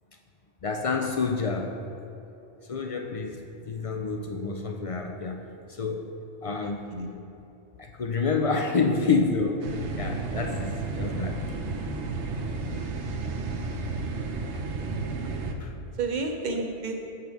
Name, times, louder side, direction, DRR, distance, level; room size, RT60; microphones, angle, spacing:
voice 1, 0.6-1.8 2.7-6.8 7.8-11.6 12.8-12.9 14.5-14.6 15.6-15.8, left 4 dB, 60° left, 3 dB, 0.3 m, -29 dB
voice 2, 6.6-7.1 14.7-15.0 16.0-16.9, right 3 dB, 50° right, 3 dB, 0.8 m, -31 dB
sound 1, 7.4-7.5 8.2-11.0, left 1 dB, 25° left, 1.0 m, -45 dB
sound 2, 9.6-15.5, right 3 dB, 90° right, 1.0 m, -32 dB
7.3 x 5.7 x 4.8 m, 2.7 s
omnidirectional pair, 1.1 m